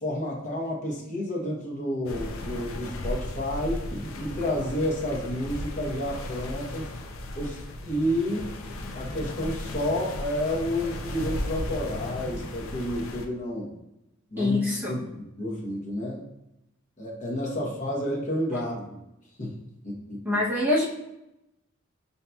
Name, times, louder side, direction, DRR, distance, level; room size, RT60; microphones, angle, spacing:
voice 1, 0.0-6.9 7.4-8.5 8.9-13.7 14.3-14.6 14.9-16.2 17.0-19.0 19.4-19.6 19.8-20.4, left 1 dB, 35° left, -3 dB, 0.8 m, -30 dB
sound 1, 2.1-13.3, left 1 dB, 75° left, 0.5 m, -35 dB
voice 2, 14.4-15.0 20.2-20.8, left 2 dB, 10° right, -6 dB, 0.7 m, -24 dB
5.4 x 2.7 x 2.3 m, 0.89 s
head